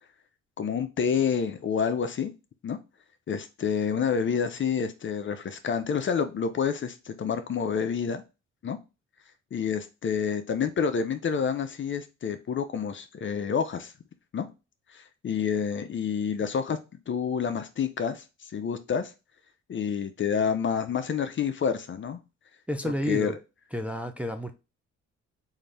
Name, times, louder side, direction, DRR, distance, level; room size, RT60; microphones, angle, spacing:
voice 1, 0.6-2.3 2.6-2.8 3.3-8.2 8.6-8.8 9.5-13.9 14.3-14.5 14.9-16.8 17.1-19.1 19.7-22.2 23.1-23.3, left 7 dB, 40° left, 0.6 m, -28 dB
voice 2, 22.7-23.4 23.7-24.5, equal, 5° right, 0.5 m, -30 dB
3.7 x 2.7 x 3.2 m
cardioid pair, 90°, 30 cm